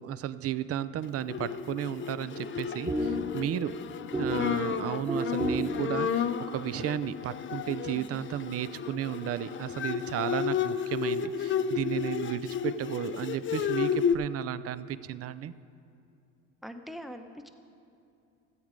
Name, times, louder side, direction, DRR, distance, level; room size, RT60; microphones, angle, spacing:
voice 1, 0.0-3.7 4.2-15.5, right 11 dB, 40° right, 15 dB, 0.5 m, -34 dB
Bowed string instrument, 1.2-14.2, left 7 dB, 35° left, 0.5 m, -32 dB
sound 1, 2.3-6.6, equal, 15° right, 1.1 m, -34 dB
voice 2, 7.9-8.2 16.6-17.5, equal, ahead, 6 dB, 0.8 m, -43 dB
14.0 x 8.0 x 5.1 m, 2.6 s
supercardioid pair, 75°, 36 cm